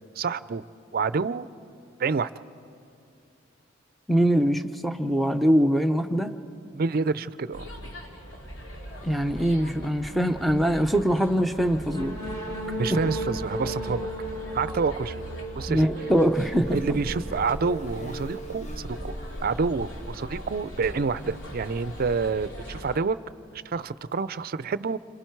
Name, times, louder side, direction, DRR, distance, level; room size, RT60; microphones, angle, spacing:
voice 1, 0.2-0.6 0.9-1.5 2.0-2.3 6.7-7.7 12.7-14.1 14.5-15.2 15.6-15.9 16.7-19.1 19.4-23.2 23.7-25.0, right 4 dB, 50° right, 15 dB, 0.4 m, -28 dB
voice 2, 4.1-6.3 9.0-12.1 15.7-16.8, equal, ahead, 8 dB, 0.6 m, -23 dB
sound 1, 7.5-23.0, equal, 85° left, 2.4 m, -41 dB
sound 2, 11.9-19.6, right 2 dB, 20° left, 3.0 m, -36 dB
Buzz, 16.3-22.5, equal, 35° left, 0.9 m, -41 dB
28.5 x 26.0 x 4.6 m, 2.5 s
head